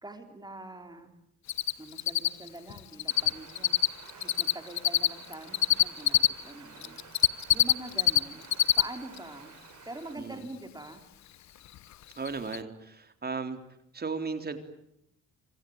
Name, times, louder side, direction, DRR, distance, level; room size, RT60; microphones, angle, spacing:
voice 1, 0.0-1.1 1.8-3.8 4.1-8.5 8.8-9.6 9.8-11.1, right 2 dB, 15° right, 6 dB, 4.2 m, -44 dB
Cricket, 1.5-1.7 2.0-6.3 6.8-8.2 8.4-8.8 9.2-9.3 11.8-11.9 12.3-12.4 12.5-12.6, left 12 dB, 65° left, 1.1 m, -22 dB
sound 1, 3.1-10.2, right 8 dB, 65° right, 5.4 m, -52 dB
voice 2, 10.2-10.5 12.1-13.6 13.9-14.6, right 4 dB, 30° right, 8 dB, 3.6 m, -35 dB
26.0 x 26.0 x 8.8 m, 0.74 s
cardioid pair, 90°, 30 cm